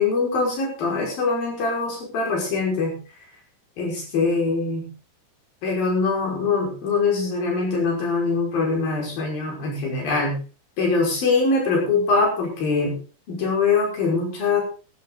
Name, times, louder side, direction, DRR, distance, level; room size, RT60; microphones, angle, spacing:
voice 1, 0.0-2.9 3.8-4.9 5.6-10.3 10.8-12.9 13.3-14.6, left 4 dB, 60° left, -1 dB, 7.3 m, -23 dB
14.5 x 13.5 x 4.0 m, 0.35 s
omnidirectional pair, 4.8 m